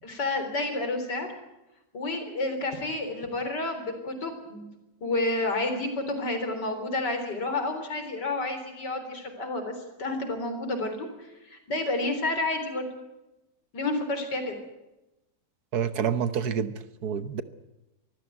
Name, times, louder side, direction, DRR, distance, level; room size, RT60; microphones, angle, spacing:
voice 1, 0.0-1.3 1.9-4.7 5.0-9.7 10.0-12.9 13.7-14.6, left 2 dB, 75° left, 7 dB, 4.5 m, -30 dB
voice 2, 15.7-16.7 17.0-17.4, right 7 dB, 65° right, 13 dB, 1.5 m, -27 dB
24.0 x 15.0 x 9.3 m, 0.97 s
omnidirectional pair, 1.8 m